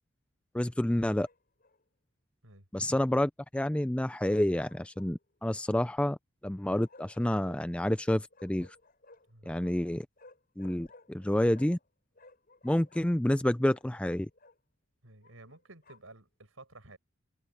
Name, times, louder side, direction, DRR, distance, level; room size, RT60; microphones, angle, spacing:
voice 1, 0.5-1.3 2.7-6.2 6.4-8.7 9.5-10.1 10.6-11.8 12.6-14.3, left 1 dB, 5° left, 0.3 m, -29 dB
Bark, 1.2-1.8 4.3-5.4 6.7-7.6 8.3-9.4 10.2-11.9 12.1-14.6 15.2-16.2, left 2 dB, 45° left, 6.7 m, -58 dB
voice 2, 9.3-9.7 15.0-17.0, right 2 dB, 75° right, 5.5 m, -53 dB
head